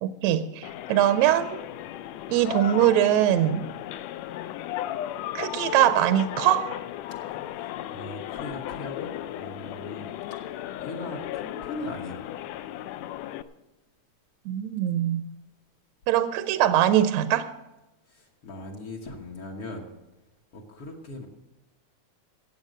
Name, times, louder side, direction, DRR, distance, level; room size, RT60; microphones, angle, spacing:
voice 1, 0.0-1.6 2.3-3.7 5.3-6.7 14.5-15.2 16.1-17.5, right 11 dB, 75° right, 11 dB, 1.7 m, -22 dB
sound 1, 0.6-13.4, left 12 dB, 80° left, 1.7 m, -35 dB
voice 2, 7.9-10.1 10.8-12.2 18.1-19.9 20.5-21.3, left 2 dB, 55° left, -1 dB, 1.9 m, -39 dB
15.5 x 8.4 x 6.4 m, 0.99 s
omnidirectional pair, 3.4 m